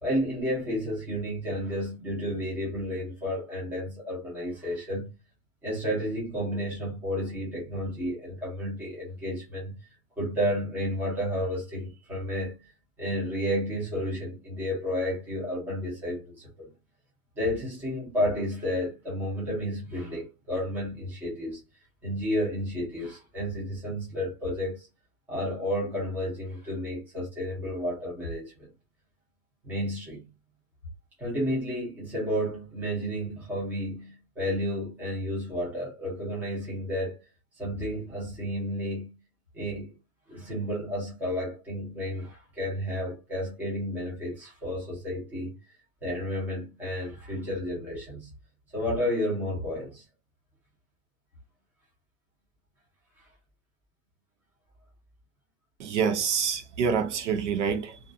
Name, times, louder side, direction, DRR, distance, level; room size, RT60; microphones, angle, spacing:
voice 1, 0.0-5.1 5.6-9.8 10.2-12.7 13.0-16.7 17.4-21.6 22.0-24.9 25.3-28.7 29.6-30.2 31.2-37.2 37.6-39.2 39.5-39.9 40.3-45.6 46.0-48.3 48.7-50.0, equal, 5° right, 0.7 m, -31 dB
voice 2, 55.8-58.0, right 6 dB, 60° right, 0.6 m, -27 dB
2.4 x 2.4 x 2.5 m
supercardioid pair, 175°, 40 cm